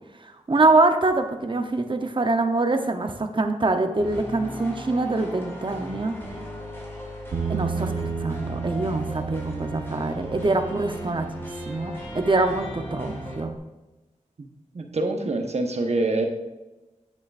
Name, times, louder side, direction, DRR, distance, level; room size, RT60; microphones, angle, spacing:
voice 1, 0.5-6.2 7.5-11.3 11.7-13.5, right 2 dB, 40° right, 6 dB, 0.8 m, -24 dB
sound 1, 4.0-13.4, left 1 dB, 20° left, 2.5 m, -37 dB
Bass guitar, 7.3-13.6, right 6 dB, 80° right, 0.8 m, -34 dB
voice 2, 14.7-16.2, right 2 dB, 55° right, 4 dB, 1.1 m, -25 dB
9.8 x 8.1 x 2.5 m, 1.1 s
wide cardioid pair, 75°, 13 cm